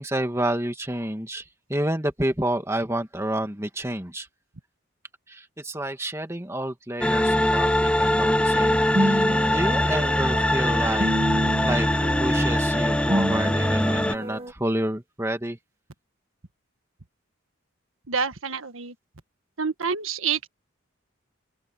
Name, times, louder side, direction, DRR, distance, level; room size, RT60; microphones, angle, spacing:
voice 1, 0.0-1.4 1.7-4.3 5.3-9.3 9.5-11.1 11.6-15.6, right 1 dB, 15° right, 2.0 m, -29 dB
sound 1, 7.0-14.2, left 1 dB, 5° left, 0.5 m, -22 dB
sound 2, 8.5-14.5, equal, 30° right, 1.1 m, -29 dB
voice 2, 18.1-18.9 19.6-20.5, right 6 dB, 80° right, 1.6 m, -27 dB
head